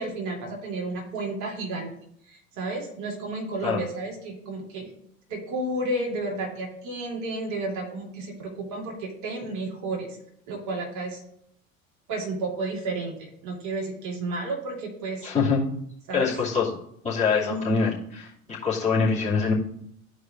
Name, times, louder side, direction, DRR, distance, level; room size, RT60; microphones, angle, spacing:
voice 1, 0.0-1.9 2.3-4.9 5.3-10.2 10.5-11.2 12.1-15.3 16.1-16.3 17.3-17.7, right 2 dB, 45° right, -1 dB, 2.5 m, -32 dB
voice 2, 15.2-15.6 16.1-16.7 17.0-19.5, left 5 dB, 15° left, -8 dB, 2.6 m, -24 dB
13.5 x 4.8 x 2.6 m, 0.71 s
figure-of-eight pair, 75°, 40 cm